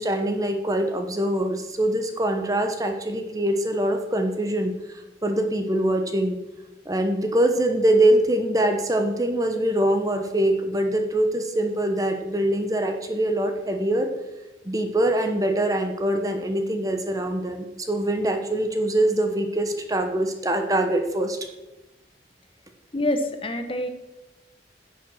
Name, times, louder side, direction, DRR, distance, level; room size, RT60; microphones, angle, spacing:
voice 1, 0.0-6.4 6.8-14.1 14.6-21.4, right 1 dB, 20° right, 5 dB, 1.0 m, -23 dB
voice 2, 22.9-23.9, left 1 dB, 30° left, 7 dB, 0.9 m, -26 dB
10.0 x 7.3 x 6.4 m, 1.0 s
head